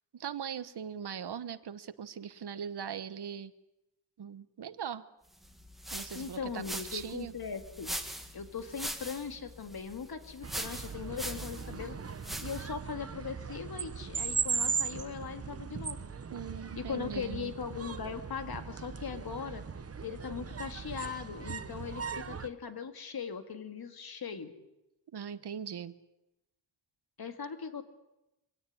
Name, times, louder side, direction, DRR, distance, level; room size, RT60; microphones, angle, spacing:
voice 1, 0.1-3.5 4.2-5.1 5.9-6.6 6.9-7.3 16.3-17.5 25.1-25.9, right 8 dB, 65° right, 14 dB, 1.1 m, -40 dB
sound 1, 5.4-12.8, equal, ahead, 1.9 m, -42 dB
voice 2, 6.1-7.9 8.3-12.0 12.4-16.0 16.8-19.6 20.0-24.5 27.2-27.8, left 6 dB, 55° left, 8 dB, 2.1 m, -39 dB
sound 2, 10.4-22.5, right 6 dB, 35° right, 1.0 m, -38 dB
24.0 x 17.0 x 9.9 m, 0.94 s
wide cardioid pair, 155°, 43 cm